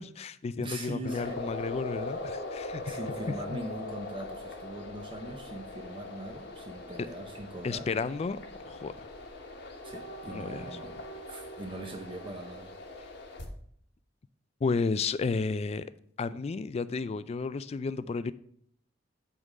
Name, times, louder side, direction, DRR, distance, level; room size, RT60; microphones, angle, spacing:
voice 1, 0.0-3.0 3.5-3.6 7.6-8.4 8.7-9.1 10.3-10.6 14.6-15.9 16.2-18.3, left 4 dB, 35° left, 0.3 m, -32 dB
voice 2, 0.6-1.3 2.8-7.9 9.8-12.7, right 1 dB, 25° right, 0.7 m, -41 dB
sound 1, 1.0-13.5, left 2 dB, 65° left, 1.2 m, -41 dB
8.1 x 3.7 x 5.3 m
head